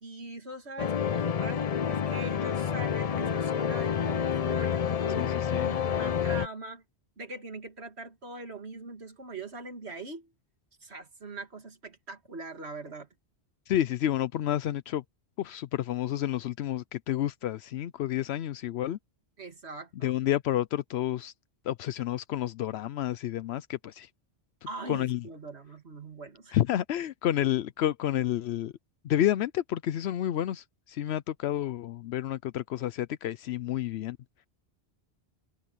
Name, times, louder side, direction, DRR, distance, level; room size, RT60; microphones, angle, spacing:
voice 1, 0.0-6.8 7.2-10.3 10.8-13.1 19.4-20.1 24.7-26.6, right 3 dB, 80° right, 2.7 m, -42 dB
sound 1, 0.8-6.5, left 8 dB, 45° left, 0.5 m, -28 dB
voice 2, 5.2-5.7 13.7-15.0 15.4-19.0 20.0-21.3 21.6-24.1 24.9-25.3 26.5-28.7 29.0-34.2, left 12 dB, 80° left, 0.8 m, -30 dB
omnidirectional pair, 1.1 m